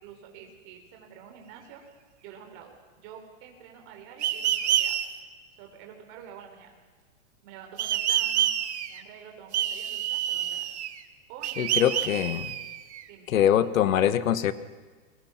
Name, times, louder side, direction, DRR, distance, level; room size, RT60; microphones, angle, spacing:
voice 1, 0.0-1.8 2.2-5.0 5.6-6.7 7.4-8.5 8.9-10.7 11.3-12.2 13.1-13.3, right 8 dB, 30° right, 3 dB, 4.2 m, -48 dB
sound 1, 4.2-5.1 7.8-9.0 9.5-11.0 11.4-13.0, right 11 dB, 55° right, 1.5 m, -27 dB
voice 2, 11.6-12.4 13.3-14.5, left 10 dB, 75° left, 14 dB, 1.5 m, -23 dB
30.0 x 22.5 x 5.9 m, 1.5 s
supercardioid pair, 170°, 40 cm